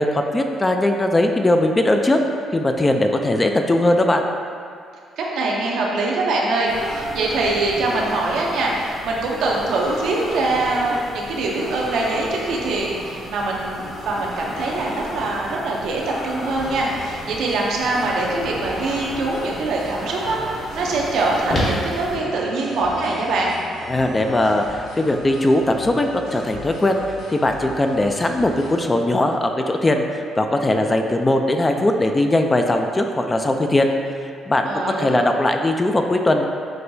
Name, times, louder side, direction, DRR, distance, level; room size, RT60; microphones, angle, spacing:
voice 1, 0.0-2.2 2.5-4.2 23.9-27.0 27.3-33.9 34.5-36.4, left 1 dB, 25° left, 4 dB, 0.3 m, -19 dB
voice 2, 5.2-13.8 14.0-23.5 34.7-35.3, right 2 dB, 75° right, -2 dB, 0.6 m, -23 dB
sound 1, 6.7-22.2, equal, 55° left, 1.2 m, -32 dB
sound 2, 16.6-28.8, left 1 dB, 85° left, 0.8 m, -40 dB
6.0 x 2.2 x 2.7 m, 2.3 s
supercardioid pair, 60°, 0 cm